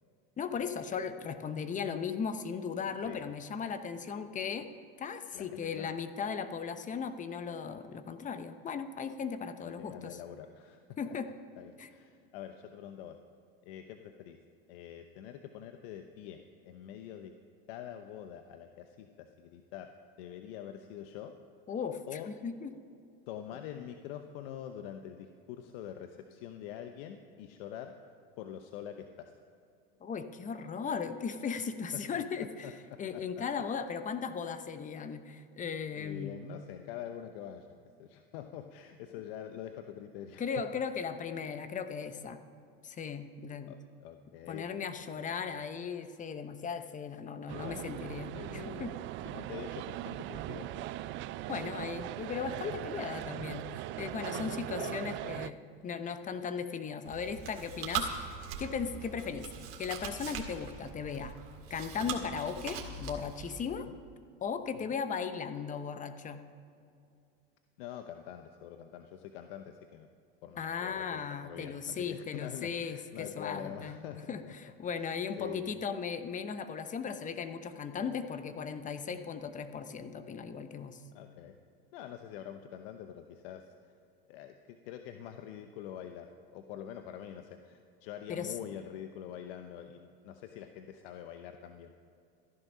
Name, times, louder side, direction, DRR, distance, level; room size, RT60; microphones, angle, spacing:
voice 1, 0.4-4.7 5.0-10.2 11.0-11.3 11.8-11.9 21.7-22.0 22.4-22.7 30.0-32.7 33.0-36.4 40.4-42.4 42.8-43.8 44.5-48.9 51.5-55.5 55.8-59.5 59.8-61.3 61.7-63.9 64.4-66.4 70.6-74.0 74.3-81.0 88.3-88.5, left 6 dB, 25° left, 10 dB, 0.9 m, -37 dB
voice 2, 5.3-5.9 9.6-11.2 11.6-13.2 13.6-14.4 14.7-17.3 17.7-21.3 22.1-22.3 23.3-27.9 28.4-29.3 31.6-31.7 31.9-33.4 35.9-37.7 38.0-40.8 43.7-44.7 45.1-45.6 47.5-48.0 48.3-50.9 54.3-55.4 63.8-63.9 64.8-65.0 67.8-70.1 70.4-74.7 75.0-75.8 81.1-81.6 81.9-83.7 84.3-91.9, left 10 dB, 70° left, 7 dB, 0.8 m, -45 dB
sound 1, 47.5-55.5, right 14 dB, 40° right, 0.4 m, -40 dB
Chewing mastication, 57.0-63.7, right 7 dB, 70° right, 2.1 m, -41 dB
14.0 x 11.0 x 5.6 m, 2.5 s
supercardioid pair, 105°, 30 cm